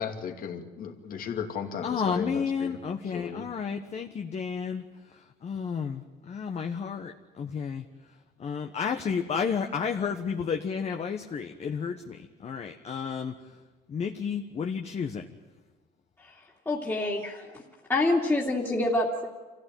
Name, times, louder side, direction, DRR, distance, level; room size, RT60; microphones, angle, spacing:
voice 1, 0.0-2.8 3.1-3.4, left 7 dB, 55° left, 5 dB, 2.6 m, -35 dB
voice 2, 1.8-4.8 5.1-7.8 8.4-13.3 13.9-15.3, left 6 dB, 40° left, 4 dB, 1.3 m, -32 dB
voice 3, 16.7-17.6 17.9-19.3, left 2 dB, 15° left, -3 dB, 2.7 m, -27 dB
25.5 x 16.0 x 9.2 m, 1.3 s
cardioid pair, 110°, 17 cm